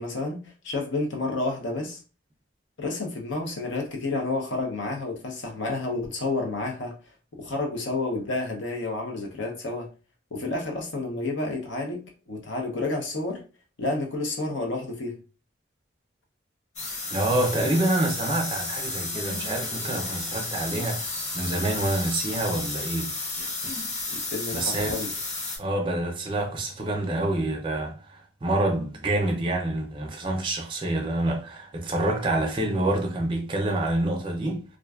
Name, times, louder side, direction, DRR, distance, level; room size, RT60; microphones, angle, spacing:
voice 1, 0.0-2.0 2.8-6.9 7.3-9.9 10.3-13.4 13.8-15.2 24.1-25.1, left 2 dB, 75° left, 0.7 m, -30 dB
sound 1, 16.8-25.6, left 3 dB, 40° left, 0.5 m, -32 dB
voice 2, 17.1-23.1 24.5-25.0 25.6-34.6, right 1 dB, 25° right, 0.4 m, -27 dB
2.4 x 2.2 x 2.3 m
head